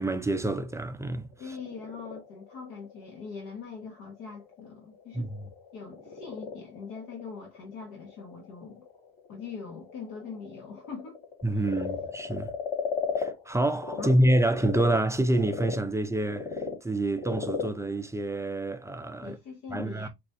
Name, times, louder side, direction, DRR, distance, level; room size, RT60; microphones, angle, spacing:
voice 1, 0.0-1.6 5.1-5.4 11.4-12.6 13.2-19.4 19.7-20.1, right 1 dB, 10° right, 0.4 m, -27 dB
Frog, 1.2-14.1 14.5-19.1, left 5 dB, 25° left, 1.7 m, -38 dB
voice 2, 1.4-5.3 5.7-8.8 9.3-11.2 11.5-11.8 14.0-14.2 19.2-20.1, left 5 dB, 65° left, 1.1 m, -42 dB
4.9 x 2.3 x 2.6 m
supercardioid pair, 100°, 34 cm